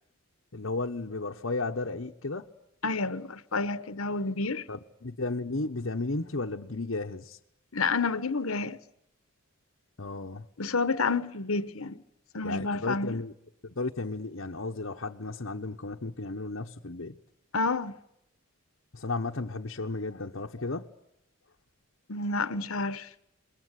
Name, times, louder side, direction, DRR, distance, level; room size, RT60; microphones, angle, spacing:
voice 1, 0.5-2.5 4.7-7.4 10.0-10.5 12.4-13.3 13.6-17.2 18.9-20.9, left 3 dB, 65° left, 1.1 m, -34 dB
voice 2, 2.8-4.7 7.7-8.8 10.6-12.0 12.3-13.2 17.5-18.0 22.1-23.1, left 3 dB, 80° left, 1.2 m, -29 dB
28.5 x 22.0 x 8.2 m
head